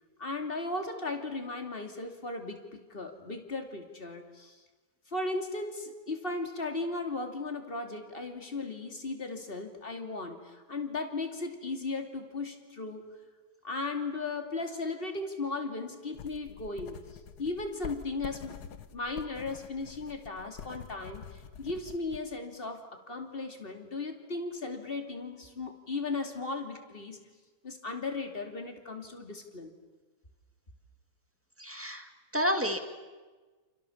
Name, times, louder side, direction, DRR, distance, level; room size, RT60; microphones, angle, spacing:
voice 1, 0.2-4.6 5.1-13.0 13.6-18.6 18.9-27.2 27.6-29.7, left 3 dB, 20° left, 5 dB, 2.6 m, -36 dB
sound 1, 16.1-22.2, left 7 dB, 80° left, 0.8 m, -46 dB
voice 2, 31.6-32.8, equal, 5° right, 5 dB, 1.4 m, -30 dB
29.5 x 28.5 x 7.2 m, 1.3 s
omnidirectional pair, 3.3 m